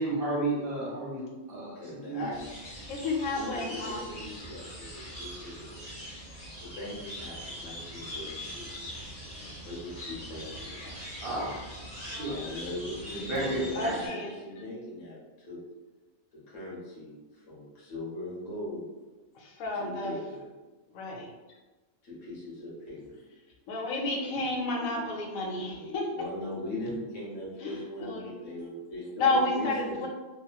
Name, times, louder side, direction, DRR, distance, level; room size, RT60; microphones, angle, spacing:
voice 1, 0.0-2.2 8.1-8.5 11.2-11.6 11.9-12.3 13.1-14.0, right 2 dB, 55° right, -4 dB, 0.7 m, -33 dB
voice 2, 1.7-2.3 3.3-5.8 6.6-8.7 9.6-11.0 12.2-15.6 16.3-18.9 19.7-20.5 22.0-23.2 25.7-30.0, left 1 dB, 65° left, -6 dB, 1.3 m, -40 dB
sound 1, 2.3-14.1, equal, 35° left, 0.9 m, -42 dB
voice 3, 2.9-4.2 13.7-14.3 19.3-20.1 20.9-21.3 23.7-26.0 27.6-28.4 29.2-30.1, left 2 dB, 85° left, 0 dB, 1.0 m, -31 dB
2.9 x 2.2 x 2.3 m, 1.2 s
omnidirectional pair, 1.4 m